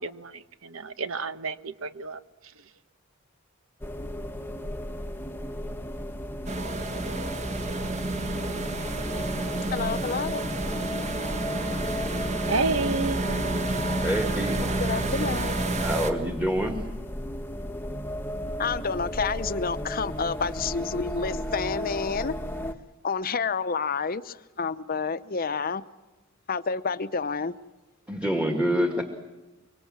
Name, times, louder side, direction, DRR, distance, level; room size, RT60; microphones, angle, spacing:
voice 1, 0.0-2.2 12.5-13.5, right 3 dB, 75° right, 1.1 m, -30 dB
sound 1, 3.8-22.7, equal, 10° left, 1.2 m, -35 dB
sound 2, 6.5-16.1, right 2 dB, 35° right, 1.8 m, -30 dB
voice 2, 9.7-10.5 14.6-15.5 18.6-22.3 23.0-25.8 26.5-27.5, left 5 dB, 45° left, 0.8 m, -29 dB
voice 3, 13.7-14.6 15.8-16.8 28.1-29.0, equal, 5° right, 2.0 m, -27 dB
25.0 x 24.5 x 7.4 m
head